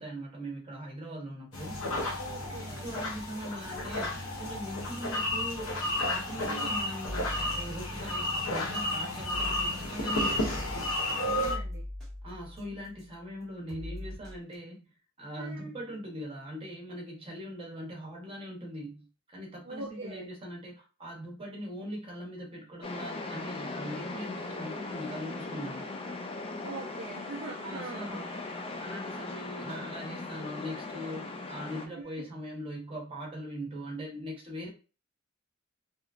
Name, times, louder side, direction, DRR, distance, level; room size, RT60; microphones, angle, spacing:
voice 1, 0.0-1.8 2.8-10.6 12.2-14.8 15.2-19.1 19.3-25.9 27.6-28.3 28.8-34.7, equal, 25° right, -3 dB, 1.0 m, -41 dB
sound 1, 1.5-11.6, left 1 dB, 80° left, 0.8 m, -32 dB
voice 2, 2.2-2.9 6.4-6.8 11.1-11.8 15.4-15.7 19.7-20.3 26.6-28.1 32.2-32.3, right 3 dB, 50° right, -3 dB, 0.5 m, -42 dB
sound 2, 7.0-8.7 9.2-13.2 13.7-14.6, left 1 dB, ahead, 1.1 m, -42 dB
sound 3, 22.8-31.9, left 3 dB, 25° left, 0.3 m, -39 dB
2.8 x 2.2 x 2.4 m, 0.34 s
head